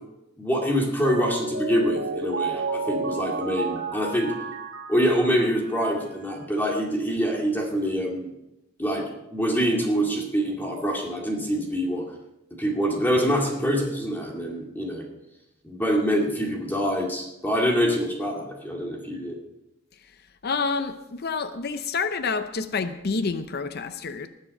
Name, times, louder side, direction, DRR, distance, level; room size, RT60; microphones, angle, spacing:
voice 1, 0.4-4.3 4.9-8.3 8.8-9.0 9.3-12.0 12.6-15.1 15.6-19.4, equal, 10° left, -1 dB, 2.2 m, -25 dB
Mallet percussion, 1.0-6.0, right 3 dB, 70° right, 1.7 m, -31 dB
voice 2, 20.4-24.3, left 4 dB, 50° left, 10 dB, 0.6 m, -28 dB
20.0 x 7.4 x 5.5 m, 0.91 s
head